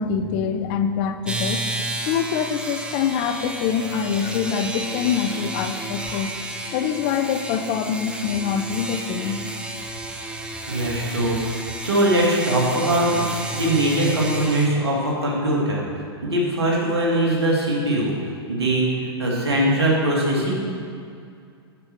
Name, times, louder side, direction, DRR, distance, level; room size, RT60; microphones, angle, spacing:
voice 1, 0.0-1.6 2.1-6.3 6.7-9.4, left 7 dB, 45° left, 9 dB, 0.6 m, -25 dB
sound 1, 1.2-14.7, right 2 dB, 5° right, 0.8 m, -32 dB
voice 2, 10.7-11.4 11.8-13.1 13.5-15.8 16.2-18.1 18.5-20.5, right 1 dB, 80° right, -3 dB, 2.3 m, -21 dB
8.2 x 7.6 x 4.5 m, 2.3 s
figure-of-eight pair, 100°, 14 cm